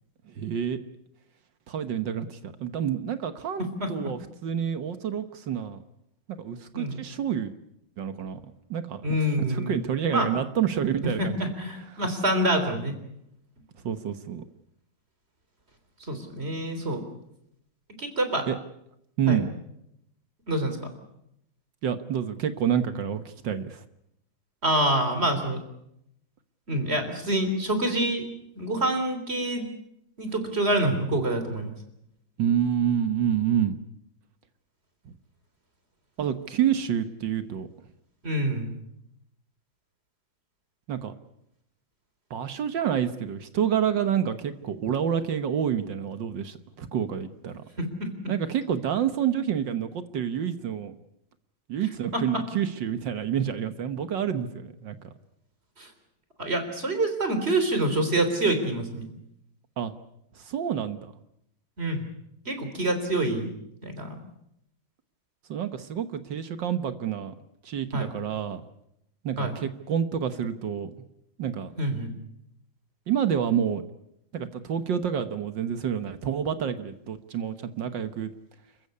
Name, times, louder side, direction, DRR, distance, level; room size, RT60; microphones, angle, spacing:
voice 1, 0.3-0.8 1.7-5.8 6.4-7.5 8.0-8.4 8.7-9.0 9.5-11.5 13.8-14.4 18.5-18.6 19.2-19.5 21.8-23.8 32.4-33.8 36.2-37.7 40.9-41.1 42.3-47.6 48.3-50.9 51.7-55.0 59.8-59.9 60.4-61.1 65.5-67.3 67.6-68.6 69.2-70.9 71.4-71.7 73.1-73.8 74.3-78.3, right 8 dB, 70° right, 10 dB, 1.8 m, -28 dB
voice 2, 9.0-9.7 10.1-10.3 11.0-13.0 16.1-17.0 18.0-18.5 19.3-19.4 20.5-20.8 24.6-25.6 26.7-28.3 28.6-29.7 30.2-31.7 38.2-38.7 47.8-48.1 52.1-52.4 55.8-55.9 56.4-59.1 61.8-62.1 62.5-63.5 63.8-64.2 67.9-68.1 69.4-69.5 71.8-72.1, right 1 dB, 30° right, 7 dB, 3.8 m, -26 dB
28.0 x 15.0 x 9.7 m, 0.80 s
omnidirectional pair, 2.1 m